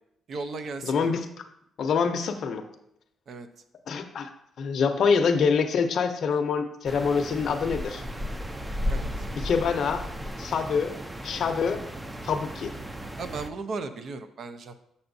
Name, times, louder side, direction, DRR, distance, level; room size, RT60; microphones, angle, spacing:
voice 1, 0.3-1.2 3.3-3.5 8.9-9.1 13.2-14.7, right 3 dB, 60° right, 9 dB, 0.6 m, -36 dB
voice 2, 0.8-1.4 1.8-2.6 3.9-4.3 4.6-8.0 9.4-10.0 10.4-10.9 11.2-11.8 12.2-12.7, left 5 dB, 60° left, 6 dB, 0.6 m, -25 dB
sound 1, 6.8-13.5, equal, 10° right, 0.5 m, -35 dB
6.8 x 5.4 x 2.6 m, 0.77 s
cardioid pair, 90°, 0 cm